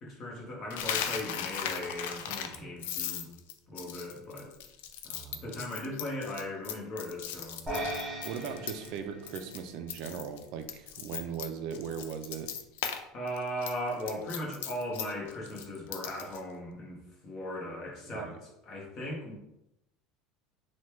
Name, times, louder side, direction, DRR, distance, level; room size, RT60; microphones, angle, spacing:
voice 1, 0.0-3.3 3.7-4.5 5.0-7.9 13.1-19.3, left 1 dB, 35° left, -2 dB, 1.0 m, -38 dB
Coin (dropping), 0.7-9.0 9.3-9.6 9.9-13.0 13.3-16.4, left 9 dB, 90° left, 0.3 m, -37 dB
sound 1, 7.7-10.1, right 1 dB, 15° right, 0.9 m, -38 dB
voice 2, 8.2-12.5 18.1-18.4, right 7 dB, 60° right, 7 dB, 0.3 m, -38 dB
3.1 x 2.2 x 3.0 m, 0.85 s
cardioid pair, 150°, 0 cm